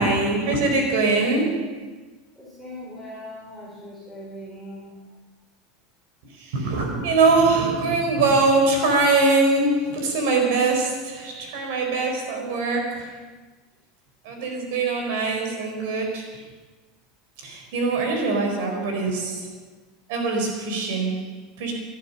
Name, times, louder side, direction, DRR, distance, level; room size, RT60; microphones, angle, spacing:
voice 1, 0.0-1.8 6.4-13.2 14.2-16.4 17.4-19.5 20.1-21.7, right 3 dB, 70° right, 3 dB, 4.5 m, -22 dB
voice 2, 2.4-5.0, left 1 dB, 5° right, -7 dB, 3.6 m, -40 dB
19.5 x 11.5 x 5.7 m, 1.2 s
supercardioid pair, 170°, 0 cm